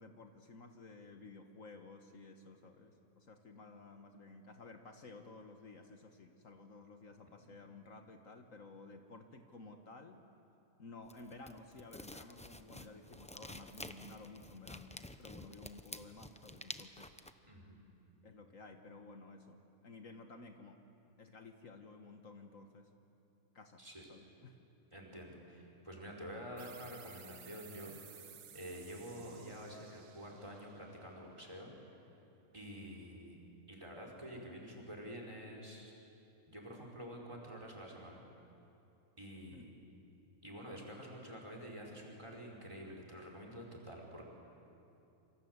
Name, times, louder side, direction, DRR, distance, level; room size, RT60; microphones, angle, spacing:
voice 1, 0.0-10.2 10.8-17.1 18.2-20.8 21.2-22.9 23.5-23.8 24.1-24.6 39.5-39.7, left 3 dB, 60° left, 5 dB, 1.8 m, -54 dB
sound 1, 11.0-17.3, left 1 dB, 5° left, 0.6 m, -50 dB
voice 2, 17.5-17.8 23.8-24.0 24.9-28.3 28.5-31.7 32.5-33.4 33.7-35.9 36.5-38.3 39.2-39.7 40.4-44.3, equal, 20° right, 0 dB, 5.0 m, -48 dB
sound 2, 26.6-31.8, right 8 dB, 55° right, 1.1 m, -57 dB
28.0 x 26.0 x 8.1 m, 2.8 s
omnidirectional pair, 1.5 m